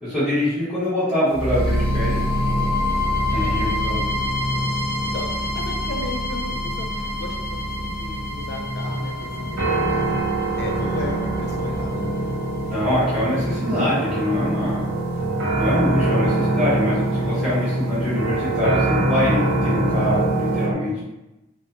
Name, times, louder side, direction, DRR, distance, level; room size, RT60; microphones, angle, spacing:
voice 1, 0.0-2.2 3.3-4.3 12.7-14.9 15.5-21.0, left 1 dB, 5° right, -13 dB, 1.2 m, -24 dB
sound 1, 1.3-15.3, left 1 dB, 15° left, 1.3 m, -27 dB
sound 2, 1.5-20.7, right 1 dB, 75° right, 0.6 m, -25 dB
voice 2, 3.3-3.8 5.0-6.9 7.2-10.0 10.6-12.3, left 2 dB, 50° left, 1 dB, 0.4 m, -35 dB
2.6 x 2.2 x 2.4 m, 0.99 s
head